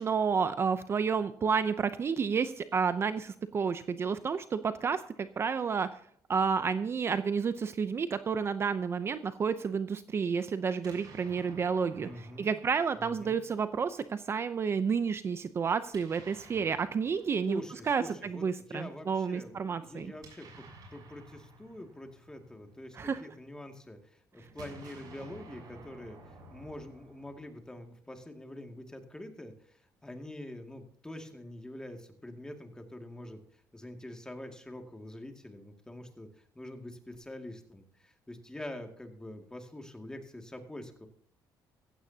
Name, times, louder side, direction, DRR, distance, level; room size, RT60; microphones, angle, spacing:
voice 1, 0.0-5.9 6.3-17.6 17.9-20.1 22.9-23.2, right 6 dB, 35° right, 12 dB, 0.6 m, -30 dB
Explosion, 10.7-13.7 15.8-18.0 19.9-23.3 24.4-27.8, right 3 dB, 65° right, 6.4 m, -53 dB
voice 2, 12.0-12.5 12.9-13.4 17.4-20.6 20.9-33.4 33.7-41.1, left 1 dB, 10° left, 4 dB, 2.2 m, -45 dB
15.5 x 15.0 x 2.8 m, 0.63 s
cardioid pair, 115°, 7 cm